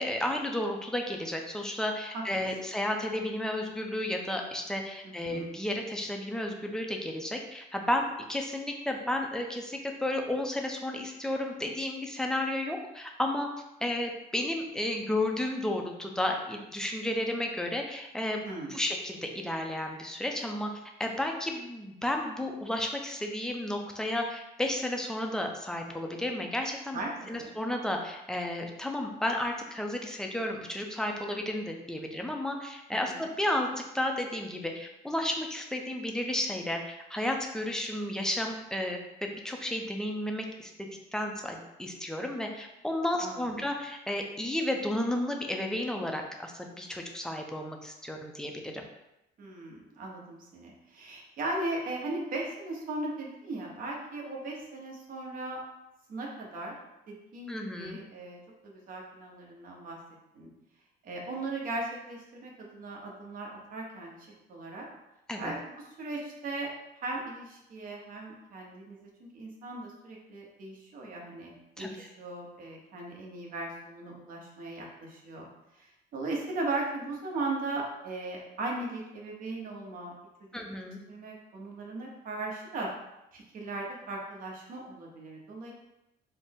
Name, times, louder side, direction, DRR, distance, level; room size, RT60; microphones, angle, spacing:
voice 1, 0.0-13.5 13.8-18.4 18.7-20.7 21.0-27.0 27.3-33.7 33.9-48.8 57.5-58.0 65.3-65.5 71.8-72.1 80.5-81.0, left 1 dB, 5° left, 2 dB, 0.5 m, -32 dB
voice 2, 5.0-5.5 18.4-18.8 26.9-27.5 33.1-33.2 43.2-43.6 49.4-55.6 56.1-56.8 57.1-60.0 60.3-60.5 61.0-64.1 64.5-64.9 65.4-66.7 67.0-71.5 71.8-75.5 75.7-80.1 81.1-82.9 83.3-85.7, right 2 dB, 55° right, -2 dB, 1.0 m, -38 dB
4.1 x 2.1 x 3.6 m, 0.90 s
cardioid pair, 110°, 17 cm